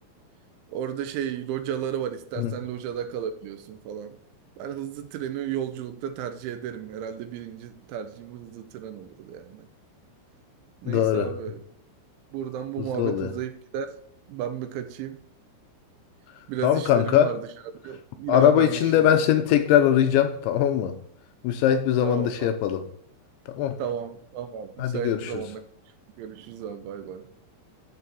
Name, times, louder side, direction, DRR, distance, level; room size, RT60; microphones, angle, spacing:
voice 1, 0.7-4.2 4.6-9.7 10.8-11.6 12.3-14.0 14.3-15.2 16.5-17.5 17.8-19.2 22.0-22.5 23.8-25.6 26.2-27.3, right 9 dB, 80° right, 3.0 m, -33 dB
voice 2, 10.9-11.3 12.8-13.3 16.6-17.3 18.3-21.0 21.4-22.8 23.6-23.8 24.8-25.4, left 10 dB, 80° left, 2.8 m, -21 dB
13.5 x 4.9 x 4.1 m
omnidirectional pair, 5.7 m